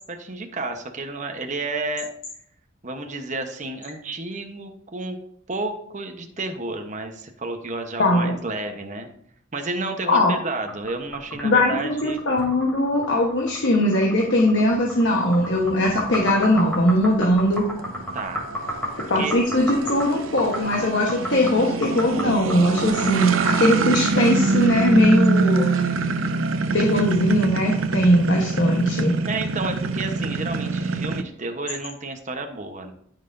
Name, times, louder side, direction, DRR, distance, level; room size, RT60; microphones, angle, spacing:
voice 1, 0.1-2.1 2.8-5.2 5.5-9.1 9.5-12.2 18.1-18.7 19.1-19.4 23.1-23.2 29.2-32.9, right 3 dB, 40° right, 4 dB, 1.0 m, -31 dB
voice 2, 8.0-8.4 10.1-10.3 11.4-17.6 19.1-25.7 26.7-29.2, left 1 dB, 60° left, -2 dB, 1.2 m, -20 dB
sound 1, 10.7-23.1, equal, 10° left, 2.9 m, -33 dB
sound 2, 15.1-31.2, right 3 dB, 90° right, 0.6 m, -25 dB
13.5 x 5.8 x 2.7 m, 0.65 s
head